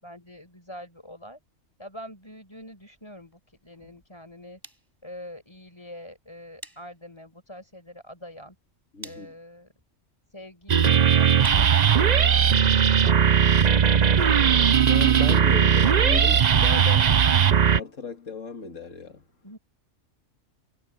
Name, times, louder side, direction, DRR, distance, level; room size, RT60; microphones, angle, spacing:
voice 1, 0.0-1.4 1.8-4.6 5.0-8.6 9.0-9.7 10.3-13.8 19.4-19.6, equal, 20° left, 6.5 m, -45 dB
sound 1, 2.6-12.4, right 1 dB, 15° right, 5.7 m, -53 dB
voice 2, 8.9-9.3 14.8-17.2 17.7-19.2, left 4 dB, 80° left, 2.4 m, -35 dB
sound 2, 10.7-17.8, right 7 dB, 40° right, 0.7 m, -18 dB
omnidirectional pair, 1.3 m